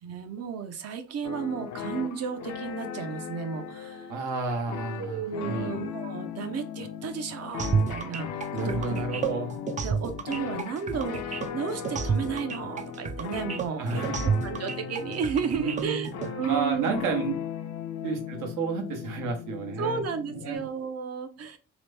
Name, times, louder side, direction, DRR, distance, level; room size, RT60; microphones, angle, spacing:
voice 1, 0.0-4.1 5.0-9.0 9.8-14.0 14.4-17.0 19.8-21.6, right 6 dB, 55° right, 8 dB, 0.7 m, -33 dB
sound 1, 1.2-20.5, left 8 dB, 65° left, 0.5 m, -37 dB
voice 2, 4.1-5.7 8.5-9.6 13.8-14.4 15.5-16.1 16.4-17.4 18.0-20.0 20.3-20.6, right 4 dB, 80° right, 4 dB, 0.9 m, -31 dB
sound 2, 7.6-16.3, right 6 dB, 25° right, 0.3 m, -30 dB
2.9 x 2.1 x 3.2 m, 0.35 s
cardioid pair, 90°, 30 cm